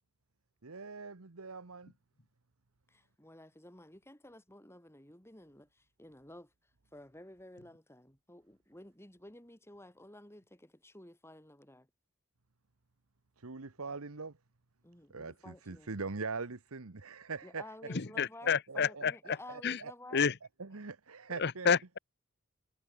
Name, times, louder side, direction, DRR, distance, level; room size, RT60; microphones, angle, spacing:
voice 1, 0.6-1.9 13.4-14.3 15.1-17.6 18.7-20.2 20.6-21.7, right 4 dB, 70° right, 1.2 m, -42 dB
voice 2, 2.9-6.5 6.9-11.9 14.8-15.9 17.4-20.3, left 1 dB, 10° left, 6.0 m, -53 dB
voice 3, 18.2-19.1 19.6-19.8 20.1-20.3 21.4-22.0, left 6 dB, 50° left, 0.9 m, -29 dB
head